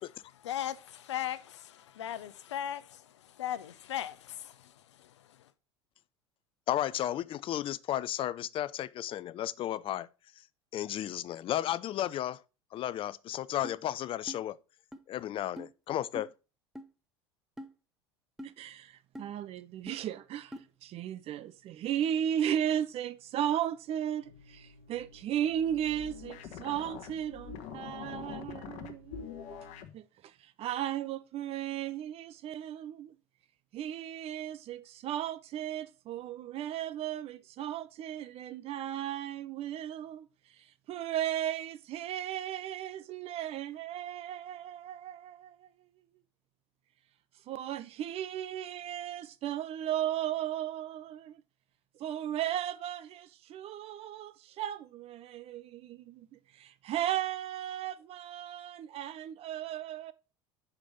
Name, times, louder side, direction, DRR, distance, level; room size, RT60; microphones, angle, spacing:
voice 1, 0.4-1.6 2.0-2.8 3.4-4.1 5.0-5.1, left 11 dB, 80° left, 0.6 m, -36 dB
voice 2, 6.7-10.1 10.7-12.4 12.7-14.6 15.1-16.3, left 12 dB, 40° left, 0.5 m, -33 dB
sound 1, 13.6-13.8 14.3-14.4 14.9-15.0 15.6-15.7 16.2-16.3 16.8-16.9 17.6-17.7 18.4-18.5 19.2-19.3 19.9-20.0 20.5-20.7, equal, 5° right, 0.7 m, -43 dB
voice 3, 18.4-29.1 29.9-33.1 33.7-40.3 40.9-45.7 47.5-51.4 52.0-56.3 56.5-60.1, right 11 dB, 45° right, 0.6 m, -35 dB
sound 2, 24.2-29.9, left 7 dB, 55° left, 1.1 m, -45 dB
5.9 x 5.0 x 5.2 m
hypercardioid pair, 80°, 15 cm